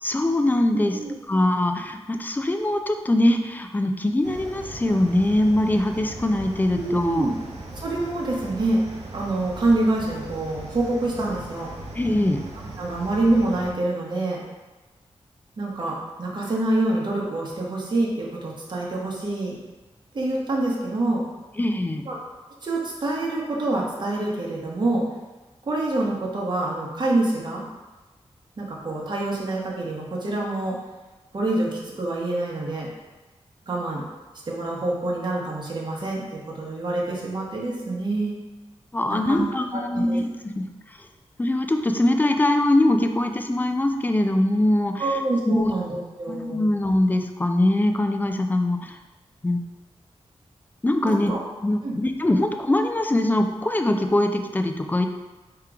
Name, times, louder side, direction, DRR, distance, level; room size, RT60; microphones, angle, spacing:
voice 1, 0.0-1.0 1.3-7.3 11.9-12.4 21.6-22.0 38.9-41.0 41.4-45.7 46.3-49.0 49.4-49.6 50.8-51.3 51.6-55.1, left 1 dB, 15° left, 6 dB, 0.3 m, -22 dB
sound 1, 4.2-13.7, right 2 dB, 80° right, 0.7 m, -39 dB
voice 2, 6.8-7.4 7.7-8.8 9.1-11.7 12.8-14.5 15.6-19.6 20.1-21.2 22.1-22.2 22.6-25.0 25.6-27.6 28.6-30.8 31.3-32.9 33.7-34.0 34.5-38.4 39.1-39.5 39.7-40.2 45.0-46.6 51.0-51.4 51.8-51.9, right 2 dB, 45° right, -4 dB, 0.9 m, -26 dB
3.6 x 2.9 x 4.8 m, 1.1 s
wide cardioid pair, 115°, 11 cm